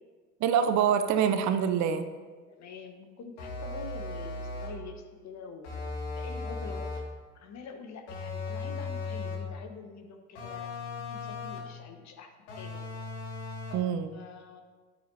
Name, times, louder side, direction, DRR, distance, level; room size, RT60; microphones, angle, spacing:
voice 1, 0.4-2.0 13.7-14.1, right 8 dB, 50° right, 10 dB, 0.7 m, -25 dB
voice 2, 2.5-5.7 6.1-6.8 7.3-12.3 12.6-12.8 14.1-14.6, left 5 dB, 45° left, 5 dB, 1.3 m, -46 dB
sound 1, 3.4-4.9 5.6-7.2 8.1-9.5 10.4-11.8 12.5-13.9, left 3 dB, 70° left, 2.0 m, -37 dB
11.5 x 8.9 x 2.8 m, 1.4 s
hypercardioid pair, 65°, 37 cm